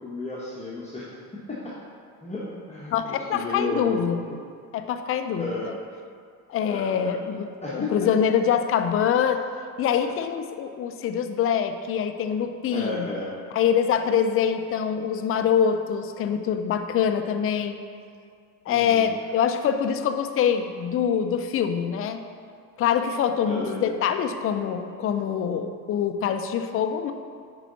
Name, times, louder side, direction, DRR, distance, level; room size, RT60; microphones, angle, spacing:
voice 1, 0.0-1.1 1.5-1.7 2.2-4.1 5.4-5.7 6.6-7.2 7.6-7.9 12.7-13.3 18.7-19.1 23.4-23.8, left 3 dB, 15° left, -7 dB, 1.2 m, -33 dB
voice 2, 2.9-4.3 4.7-5.7 6.5-9.4 9.8-13.1 13.5-17.8 18.7-22.2 22.8-27.1, left 8 dB, 30° left, 8 dB, 0.5 m, -24 dB
9.8 x 4.7 x 4.0 m, 2.2 s
figure-of-eight pair, 55°, 47 cm